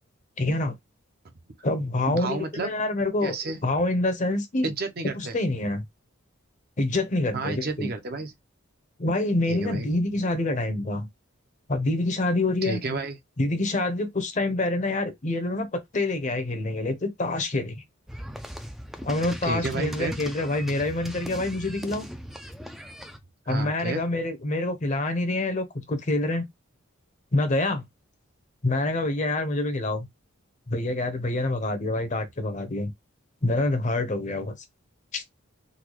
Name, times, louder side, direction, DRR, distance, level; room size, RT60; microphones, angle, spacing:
voice 1, 0.4-0.7 1.6-3.4 3.6-4.7 5.1-5.8 6.8-7.9 9.0-11.1 11.7-12.8 13.4-17.8 19.0-22.1 23.5-26.5 27.3-27.8 28.6-30.1 30.7-32.9 33.4-34.6 35.1-35.2, left 2 dB, 35° left, 0.7 m, -26 dB
voice 2, 2.1-2.7 3.2-3.6 4.6-5.3 7.3-8.3 9.5-10.0 12.6-13.1 19.4-20.2 23.5-24.0, right 3 dB, 45° right, 0.6 m, -31 dB
sound 1, 18.1-23.2, equal, ahead, 0.3 m, -38 dB
3.8 x 2.2 x 3.0 m
head